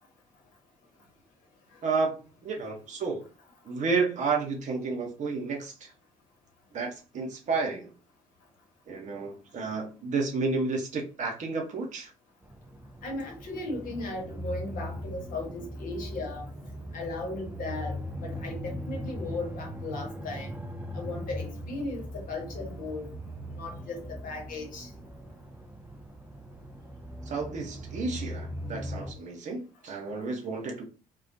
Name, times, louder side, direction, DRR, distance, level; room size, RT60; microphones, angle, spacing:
voice 1, 1.8-3.3 3.6-5.9 6.7-7.9 8.9-12.1 27.3-30.8, right 4 dB, 50° right, 0.9 m, -31 dB
sound 1, 12.4-29.1, equal, 10° right, 0.5 m, -39 dB
voice 2, 13.0-16.4 16.9-20.5 20.9-23.1 23.5-24.9, left 2 dB, 55° left, 1.0 m, -36 dB
2.3 x 2.2 x 2.6 m
hypercardioid pair, 50°, 17 cm